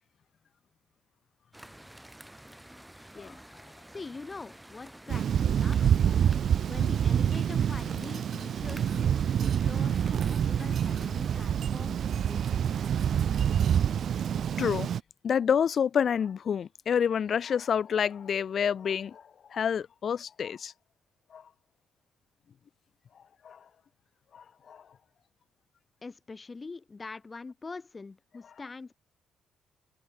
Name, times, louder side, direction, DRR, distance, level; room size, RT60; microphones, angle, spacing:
sound 1, 1.5-11.4, right 1 dB, 5° right, 6.1 m, -50 dB
voice 1, 3.9-6.0 6.7-13.8 26.0-28.9, left 4 dB, 30° left, 6.6 m, -44 dB
Thunder, 5.1-15.0, right 9 dB, 60° right, 0.8 m, -27 dB
voice 2, 14.6-14.9 15.2-19.2 19.5-20.7 21.3-21.4 23.4-23.6 24.3-24.8, left 7 dB, 55° left, 2.8 m, -28 dB
cardioid pair, 90°, 0 cm